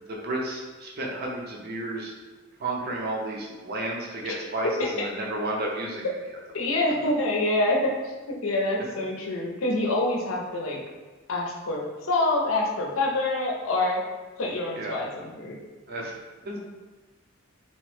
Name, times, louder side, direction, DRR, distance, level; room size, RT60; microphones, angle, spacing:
voice 1, 0.1-2.1 2.6-6.1 14.8-15.0 15.9-16.1 16.4-16.7, right 1 dB, 50° right, -2 dB, 0.5 m, -32 dB
voice 2, 6.5-10.8 11.3-14.0 14.4-15.6, left 2 dB, 80° left, -1 dB, 0.5 m, -26 dB
2.9 x 2.1 x 3.1 m, 1.3 s
head